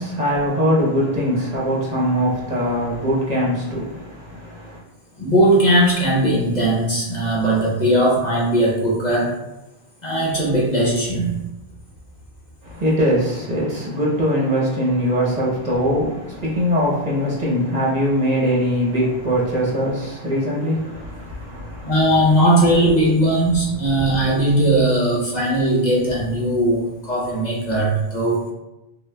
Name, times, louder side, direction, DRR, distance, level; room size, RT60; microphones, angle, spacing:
voice 1, 0.0-4.8 12.6-22.0, equal, 40° right, -6 dB, 1.1 m, -21 dB
voice 2, 5.2-9.3 10.0-11.4 21.8-28.4, right 1 dB, 45° left, -5 dB, 0.9 m, -18 dB
6.1 x 2.4 x 2.2 m, 0.95 s
omnidirectional pair, 1.1 m